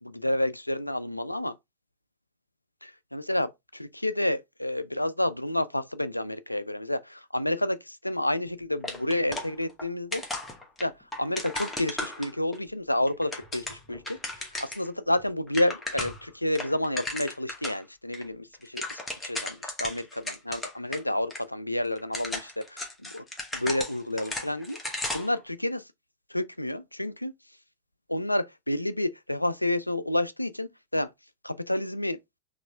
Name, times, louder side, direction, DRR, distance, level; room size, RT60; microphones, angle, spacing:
voice 1, 0.0-1.5 2.8-10.2 10.8-10.9 11.2-14.2 14.6-22.9 23.1-23.2 23.5-24.8 25.1-25.8 26.3-27.3 28.1-31.1 31.4-32.2, left 1 dB, 85° left, 0.3 m, -30 dB
sound 1, 8.8-9.9 10.1-12.6 13.1-14.9 15.2-15.3 15.5-16.3 16.5-17.8 18.1-18.2 18.5-21.0 21.3-21.4 22.0-25.4, left 2 dB, 10° left, 1.2 m, -35 dB
4.0 x 3.1 x 3.4 m
figure-of-eight pair, 90°, 0 cm